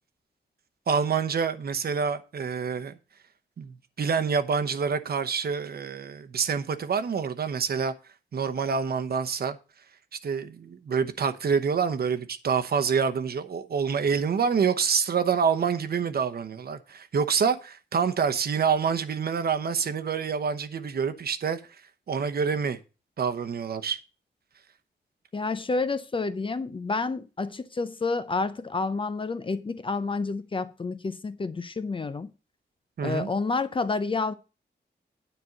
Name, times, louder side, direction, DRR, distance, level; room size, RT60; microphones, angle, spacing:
voice 1, 0.9-3.0 3.6-7.9 8.3-9.6 10.2-21.6 22.1-22.8 23.2-24.0 33.0-33.3, right 6 dB, 55° right, 0.9 m, -27 dB
voice 2, 25.3-32.3 33.0-34.3, left 3 dB, 30° left, 0.6 m, -29 dB
9.8 x 4.4 x 7.8 m
wide cardioid pair, 165°, 19 cm